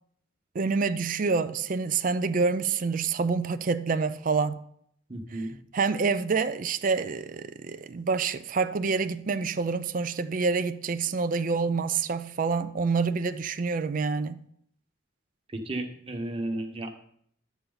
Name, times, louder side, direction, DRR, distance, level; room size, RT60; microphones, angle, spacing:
voice 1, 0.5-4.6 5.3-5.5 5.7-14.4, right 4 dB, 45° right, 0.4 m, -27 dB
voice 2, 5.1-5.5 15.5-16.9, right 1 dB, 30° right, 1.2 m, -33 dB
11.0 x 8.3 x 3.9 m
head